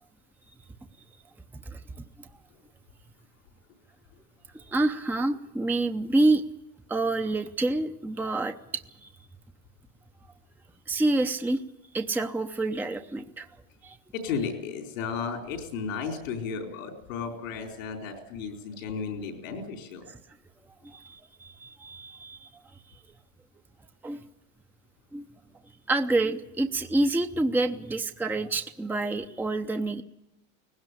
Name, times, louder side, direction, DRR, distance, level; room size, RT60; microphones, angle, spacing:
voice 1, 4.5-6.4 6.9-9.1 10.9-11.6 11.9-13.5 13.8-14.0 20.1-20.2 20.8-22.5 22.9-23.0 24.0-24.2 25.1-25.2 25.9-30.0, right 2 dB, 5° right, 7 dB, 0.7 m, -28 dB
voice 2, 14.1-20.1, left 5 dB, 90° left, 4 dB, 4.3 m, -34 dB
19.0 x 16.5 x 9.9 m, 0.89 s
supercardioid pair, 120°, 39 cm